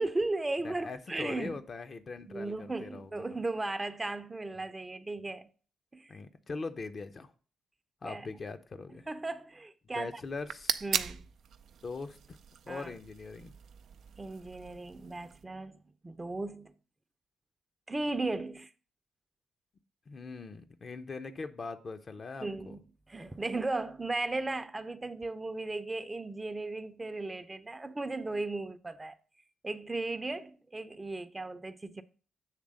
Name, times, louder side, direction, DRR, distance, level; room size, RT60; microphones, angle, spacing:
voice 1, 0.0-1.6 2.3-5.5 5.9-6.1 8.0-8.3 9.1-10.1 10.8-11.2 12.7-12.9 14.2-15.8 16.0-16.7 17.9-18.7 22.4-22.8 23.1-29.2 29.6-32.0, right 2 dB, 25° right, 0.6 m, -36 dB
voice 2, 0.6-3.4 6.1-7.3 8.0-9.1 9.9-10.8 11.8-12.4 12.7-13.5 20.1-22.8, left 4 dB, 45° left, 0.7 m, -41 dB
sound 1, 10.2-15.4, right 8 dB, 65° right, 0.4 m, -39 dB
7.5 x 3.3 x 6.4 m
hypercardioid pair, 45°, 0 cm